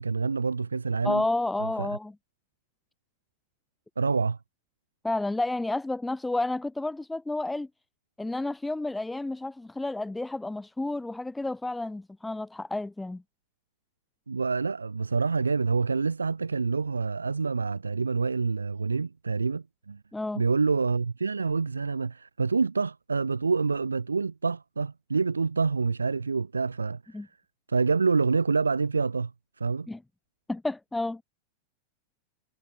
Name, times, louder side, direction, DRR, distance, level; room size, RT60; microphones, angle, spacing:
voice 1, 0.0-1.2 1.6-1.9 4.0-4.4 14.3-20.0 20.4-27.2 27.7-29.3 29.6-29.9, right 4 dB, 75° right, 0.5 m, -27 dB
voice 2, 1.0-2.2 5.0-7.7 8.2-13.2 20.1-20.4 27.1-27.3 29.9-30.0 30.5-31.2, left 2 dB, 5° left, 0.5 m, -31 dB
figure-of-eight pair, 90°, 0 cm